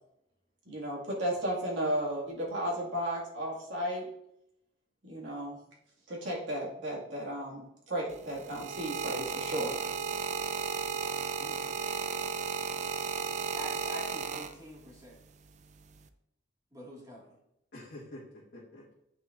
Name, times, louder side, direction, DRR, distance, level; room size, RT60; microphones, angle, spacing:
voice 1, 0.7-4.1 5.0-5.6 6.1-9.7, equal, 90° right, -3 dB, 2.1 m, -34 dB
sound 1, 8.1-14.9 15.8-16.1, right 6 dB, 40° right, 0.4 m, -34 dB
voice 2, 11.4-12.1 12.4-12.7 17.7-18.8, left 1 dB, 60° left, -7 dB, 1.7 m, -49 dB
voice 3, 13.5-15.2 16.7-17.4, equal, 20° right, -4 dB, 2.0 m, -45 dB
8.9 x 6.0 x 2.6 m, 0.80 s
head